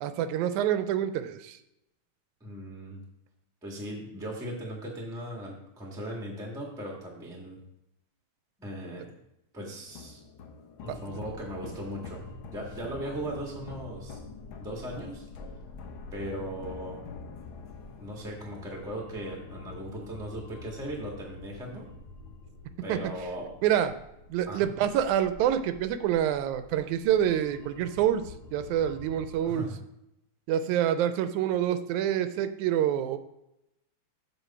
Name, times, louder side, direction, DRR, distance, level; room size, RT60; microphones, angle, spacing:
voice 1, 0.0-1.6 10.9-11.0 22.9-23.0 23.6-23.9 24.3-29.7 30.5-33.2, right 10 dB, 85° right, 11 dB, 2.0 m, -27 dB
voice 2, 2.4-3.0 3.6-7.6 8.6-9.1 9.5-10.2 10.8-12.2 12.5-14.2 14.6-15.2 16.1-17.0 18.0-21.9 22.8-23.5 24.5-24.7 29.4-29.8, right 1 dB, ahead, -1 dB, 0.8 m, -38 dB
sound 1, 9.9-20.1, left 5 dB, 85° left, 1.1 m, -47 dB
sound 2, 10.8-29.4, left 3 dB, 65° left, 1.7 m, -48 dB
7.0 x 6.5 x 4.2 m, 0.86 s
omnidirectional pair, 3.4 m